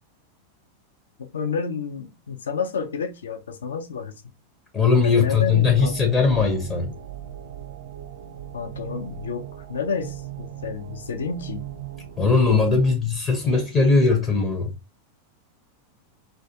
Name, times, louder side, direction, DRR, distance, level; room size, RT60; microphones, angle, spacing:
voice 1, 1.2-4.1 5.0-5.9 8.5-11.7, left 5 dB, 65° left, 0.5 m, -30 dB
voice 2, 4.7-6.9 12.2-14.7, left 4 dB, 20° left, 0.6 m, -19 dB
sound 1, 5.3-12.9, right 11 dB, 55° right, 0.5 m, -38 dB
2.3 x 2.2 x 2.6 m
figure-of-eight pair, 90°, 0 cm